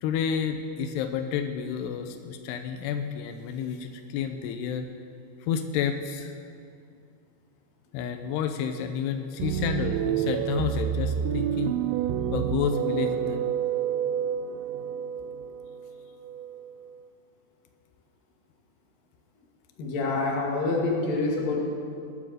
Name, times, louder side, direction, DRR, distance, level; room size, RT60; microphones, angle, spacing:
voice 1, 0.0-4.9 5.4-6.3 7.9-11.8 12.3-13.4, left 7 dB, 90° left, 7 dB, 2.3 m, -30 dB
sound 1, 9.4-16.9, right 9 dB, 85° right, 2.7 m, -29 dB
voice 2, 19.8-21.6, left 3 dB, 55° left, -2 dB, 3.3 m, -26 dB
20.0 x 9.2 x 4.9 m, 2.3 s
omnidirectional pair, 5.6 m